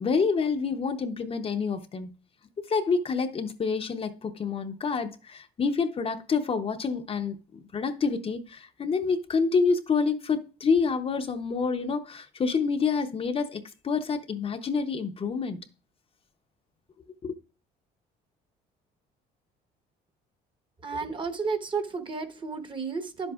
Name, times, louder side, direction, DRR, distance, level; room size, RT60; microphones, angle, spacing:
voice 1, 0.0-2.1 2.7-15.6 17.2-17.3, left 5 dB, 35° left, 0.8 m, -28 dB
voice 2, 20.8-23.3, right 4 dB, 30° right, 1.1 m, -32 dB
10.5 x 7.8 x 2.4 m
cardioid pair, 110°, 17 cm